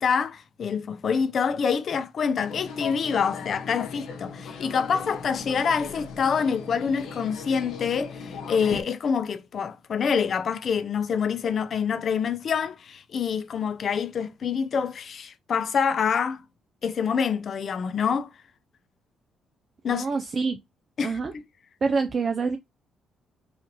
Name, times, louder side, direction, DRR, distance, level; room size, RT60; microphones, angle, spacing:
voice 1, 0.0-16.4 16.8-18.3 19.8-20.1 21.0-21.3, left 6 dB, 55° left, 0.7 m, -26 dB
sound 1, 2.4-8.8, left 5 dB, 85° left, 1.3 m, -38 dB
voice 2, 19.9-20.6 21.0-21.3 21.8-22.6, right 4 dB, 45° right, 0.5 m, -26 dB
4.8 x 2.5 x 2.9 m
cardioid pair, 90°, 0 cm